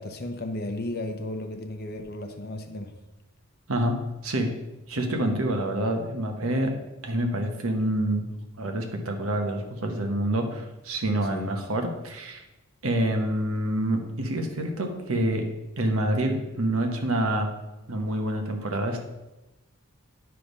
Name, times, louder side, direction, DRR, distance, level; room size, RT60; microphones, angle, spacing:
voice 1, 0.0-2.9 11.3-11.5, left 1 dB, 45° left, 6 dB, 0.8 m, -34 dB
voice 2, 3.7-4.5 4.9-6.7 7.0-8.3 8.6-12.4 12.8-15.5 15.8-17.5 17.9-19.0, right 1 dB, 70° right, 4 dB, 1.1 m, -27 dB
9.9 x 3.4 x 5.3 m, 1.0 s
head